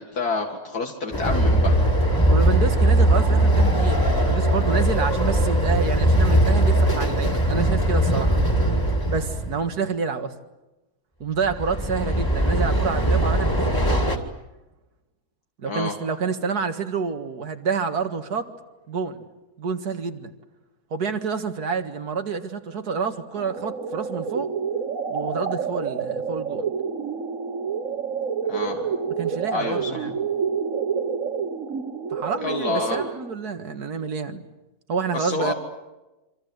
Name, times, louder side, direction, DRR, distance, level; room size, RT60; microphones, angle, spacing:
voice 1, 0.0-1.8 15.7-15.9 28.5-28.8 29.5-29.9 32.4-33.0 35.1-35.5, left 3 dB, 80° left, 3 dB, 2.7 m, -28 dB
Train, 1.1-9.6 11.4-14.2, right 1 dB, 15° left, 2.4 m, -20 dB
voice 2, 2.3-8.4 9.1-10.3 11.2-14.0 15.6-18.5 18.9-19.3 19.6-20.3 20.9-24.5 25.1-26.6 29.2-30.2 32.1-34.4 34.9-35.5, right 5 dB, 90° right, 8 dB, 2.3 m, -28 dB
sound 1, 23.4-33.3, right 6 dB, 60° right, 1.9 m, -28 dB
27.5 x 25.5 x 8.1 m, 1.0 s
omnidirectional pair, 1.6 m